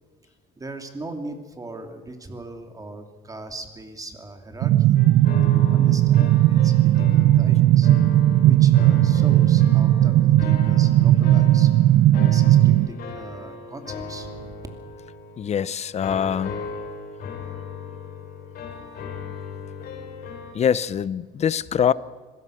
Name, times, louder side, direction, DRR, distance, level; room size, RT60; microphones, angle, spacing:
voice 1, 0.6-5.0 5.4-7.9 8.4-11.7 12.1-14.6, right 2 dB, 20° right, 2.9 m, -39 dB
sound 1, 4.6-12.9, right 14 dB, 75° right, 0.6 m, -17 dB
sound 2, 4.9-20.5, left 5 dB, 60° left, 7.1 m, -37 dB
voice 2, 15.4-16.7 19.8-19.9 20.5-21.9, left 8 dB, 40° left, 0.7 m, -24 dB
25.5 x 17.0 x 6.5 m
cardioid pair, 110°, 17 cm